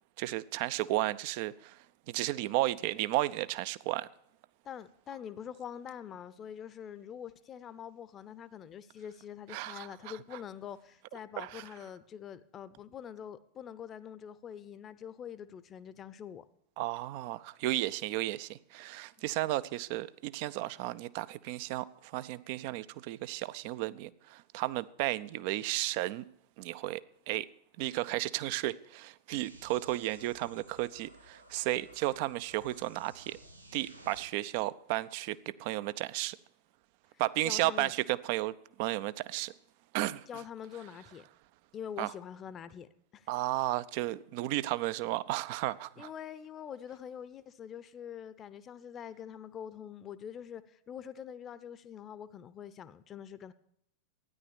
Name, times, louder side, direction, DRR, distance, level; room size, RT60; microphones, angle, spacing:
voice 1, 0.2-1.8 2.1-4.1 9.5-10.4 11.4-11.7 16.8-26.3 26.6-27.5 27.8-33.4 33.7-36.4 37.2-39.5 39.9-40.3 42.0-42.1 43.3-46.1, right 16 dB, 45° right, 0.5 m, -33 dB
voice 2, 4.6-16.4 37.4-37.9 40.3-41.2 41.7-43.3 46.0-53.5, left 8 dB, 25° left, 0.7 m, -45 dB
sound 1, 29.3-34.3, right 1 dB, 85° right, 1.0 m, -55 dB
13.5 x 10.0 x 6.9 m
figure-of-eight pair, 90°, 0 cm